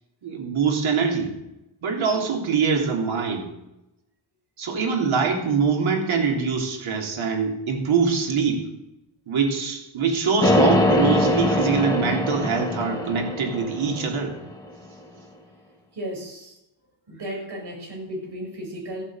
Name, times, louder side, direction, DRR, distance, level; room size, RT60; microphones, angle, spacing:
voice 1, 0.2-1.3 1.8-3.5 4.6-8.7 9.3-14.3, right 5 dB, 80° right, 1 dB, 3.6 m, -23 dB
sound 1, 10.4-14.5, left 1 dB, 10° left, 2.3 m, -22 dB
voice 2, 15.9-16.6 17.1-19.0, equal, 55° right, 0 dB, 6.9 m, -34 dB
15.0 x 8.9 x 7.9 m, 0.90 s
wide cardioid pair, 130°, 48 cm